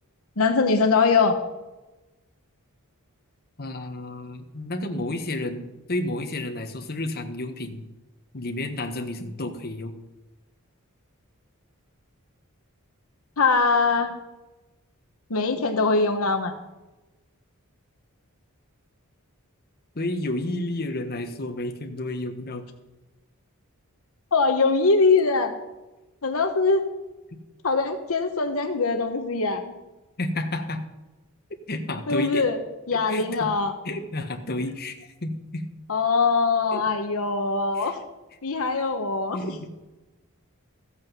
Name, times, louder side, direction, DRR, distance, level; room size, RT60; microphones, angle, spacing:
voice 1, 0.4-1.4 13.4-14.1 15.3-16.5 24.3-25.5 26.2-26.8 27.6-29.7 32.1-32.6 32.9-33.7 35.9-38.0 38.4-39.4, left 4 dB, 70° left, 6 dB, 1.0 m, -22 dB
voice 2, 3.6-7.8 8.3-9.9 19.9-22.6 30.2-30.8 31.7-32.5 32.9-33.5 33.8-35.6 36.7-36.8 37.7-38.0 39.3-39.7, left 1 dB, 45° left, 5 dB, 1.3 m, -31 dB
14.5 x 8.7 x 5.5 m, 1.1 s
head